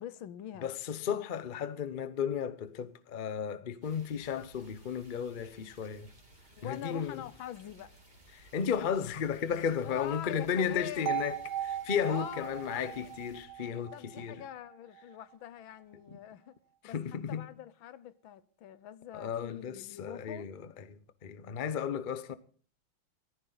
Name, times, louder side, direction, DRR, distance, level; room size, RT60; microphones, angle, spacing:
voice 1, 0.0-0.7 6.6-7.9 9.8-11.2 12.1-12.5 12.8-13.1 13.9-16.6 16.8-17.0 17.3-20.5, left 11 dB, 80° left, 1.6 m, -44 dB
voice 2, 0.6-6.1 6.6-7.2 8.3-14.4 16.1-16.2 16.8-17.5 19.1-22.3, left 7 dB, 55° left, 0.5 m, -34 dB
sound 1, 3.8-13.4, right 1 dB, 20° right, 3.0 m, -59 dB
sound 2, 11.1-15.0, right 10 dB, 75° right, 1.8 m, -38 dB
19.0 x 14.0 x 4.0 m
omnidirectional pair, 2.2 m